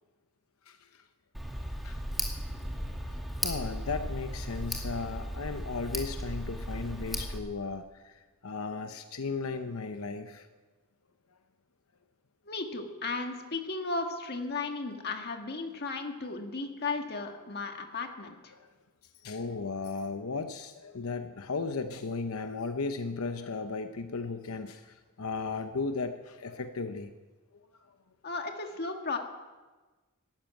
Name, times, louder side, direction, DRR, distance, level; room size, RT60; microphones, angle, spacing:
Tick, 1.3-7.4, equal, ahead, 2.3 m, -36 dB
voice 1, 3.4-7.8 8.4-10.4 19.2-24.8 25.2-27.1, left 4 dB, 90° left, 8 dB, 0.8 m, -35 dB
voice 2, 12.5-18.5 28.2-29.2, left 3 dB, 50° left, 4 dB, 1.7 m, -35 dB
13.0 x 12.0 x 9.2 m, 1.3 s
head